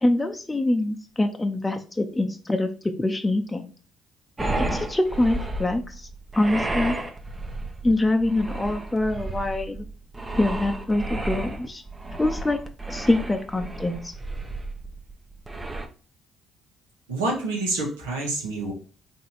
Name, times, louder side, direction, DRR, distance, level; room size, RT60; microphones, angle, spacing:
voice 1, 0.0-3.7 4.7-6.1 6.4-7.0 7.8-9.8 10.4-11.8 12.2-12.6 12.9-14.1, left 2 dB, 15° left, 5 dB, 0.6 m, -24 dB
sound 1, 4.4-15.9, right 2 dB, 25° right, 0.7 m, -32 dB
voice 2, 17.1-18.7, right 2 dB, 85° right, -1 dB, 1.2 m, -27 dB
4.1 x 2.8 x 3.9 m, 0.39 s
hypercardioid pair, 50°, 0 cm